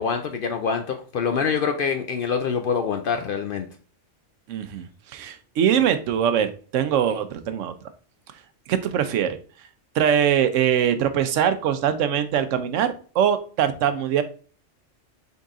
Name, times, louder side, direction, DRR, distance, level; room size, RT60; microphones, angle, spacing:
voice 1, 0.0-3.7, left 6 dB, 60° left, 6 dB, 0.6 m, -25 dB
voice 2, 4.5-7.7 8.7-9.4 10.0-14.2, right 9 dB, 80° right, 11 dB, 0.9 m, -22 dB
3.9 x 3.7 x 3.6 m, 0.40 s
omnidirectional pair, 1.3 m